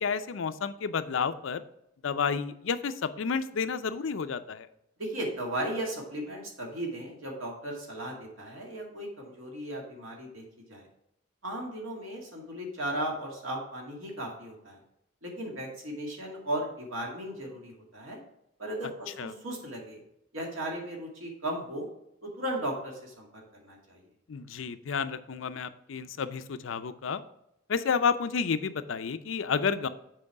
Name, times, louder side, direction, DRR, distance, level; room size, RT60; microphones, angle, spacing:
voice 1, 0.0-1.6 2.0-4.7 19.2-19.3 24.3-27.2 27.7-29.9, left 6 dB, 75° left, 12 dB, 0.5 m, -30 dB
voice 2, 5.0-10.4 10.7-10.9 11.4-14.8 15.2-18.2 18.6-20.0 20.3-21.9 22.2-24.0, right 1 dB, 85° right, -1 dB, 2.2 m, -36 dB
7.7 x 4.7 x 4.7 m, 0.79 s
head